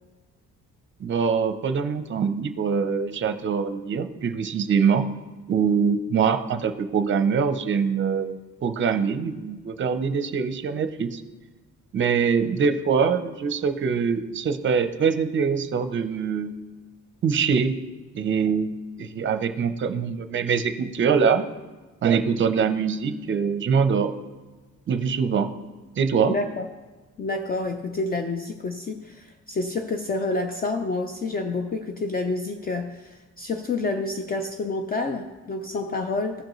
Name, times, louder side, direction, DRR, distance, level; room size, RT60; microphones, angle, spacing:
voice 1, 1.0-5.1 5.5-11.2 11.9-16.6 17.2-17.8 18.1-18.7 19.0-21.5 22.0-24.1 24.9-25.5 26.0-26.4, right 6 dB, 40° right, 10 dB, 0.6 m, -23 dB
voice 2, 26.3-26.6 27.2-36.4, left 3 dB, 30° left, 5 dB, 0.5 m, -28 dB
15.5 x 5.2 x 3.1 m, 1.3 s
cardioid pair, 140°, 31 cm